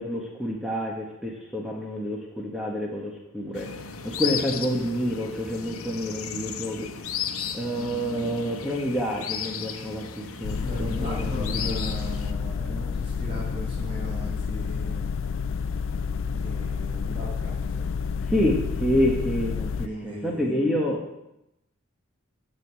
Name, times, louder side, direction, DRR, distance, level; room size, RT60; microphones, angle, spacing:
voice 1, 0.0-3.7 4.0-6.9 7.5-11.8 18.3-21.0, equal, ahead, -3 dB, 1.6 m, -28 dB
sound 1, 3.5-12.3, left 7 dB, 90° left, 1.0 m, -35 dB
sound 2, 10.4-19.9, left 5 dB, 60° left, 0.4 m, -29 dB
voice 2, 10.6-15.0 16.3-17.8 19.8-20.8, right 1 dB, 25° right, -6 dB, 5.4 m, -38 dB
9.5 x 7.8 x 7.7 m, 0.87 s
head